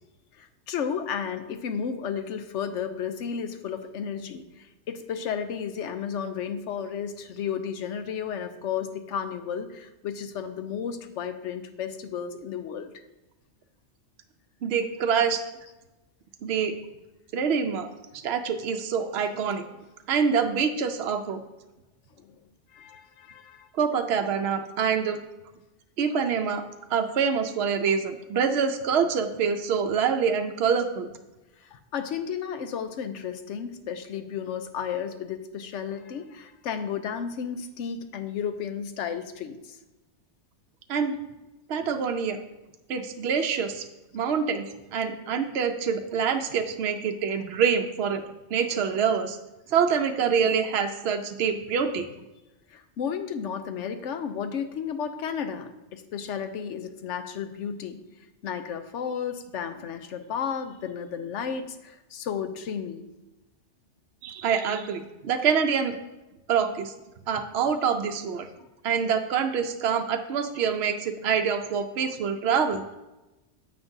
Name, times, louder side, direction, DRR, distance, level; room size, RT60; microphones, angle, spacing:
voice 1, 0.4-12.9 22.2-22.3 22.7-23.7 31.6-39.8 52.7-58.0 58.4-63.1, left 7 dB, 80° left, 8 dB, 1.0 m, -33 dB
voice 2, 14.6-15.4 16.4-16.8 17.3-17.9 18.1-19.6 20.1-21.4 23.7-25.2 26.0-26.6 26.9-31.1 40.9-41.2 41.7-42.4 42.9-43.9 44.1-44.7 44.9-48.2 48.5-49.4 49.7-52.1 64.2-66.0 66.5-66.9 67.3-68.5 68.8-72.8, right 6 dB, 65° right, 6 dB, 0.8 m, -25 dB
9.5 x 7.7 x 2.7 m, 1.0 s
omnidirectional pair, 1.2 m